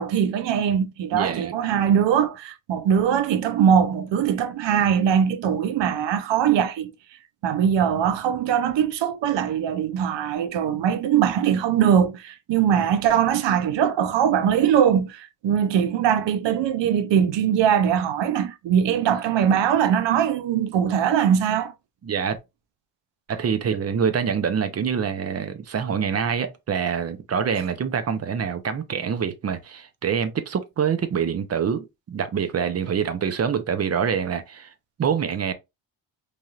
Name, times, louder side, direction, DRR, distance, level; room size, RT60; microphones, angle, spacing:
voice 1, 0.0-6.9 7.4-21.7, right 8 dB, 75° right, 0.6 m, -21 dB
voice 2, 1.1-1.6 22.0-22.4 23.3-34.7 35.0-35.5, right 7 dB, 35° right, 0.5 m, -25 dB
3.2 x 2.6 x 2.3 m
cardioid pair, 110°, 44 cm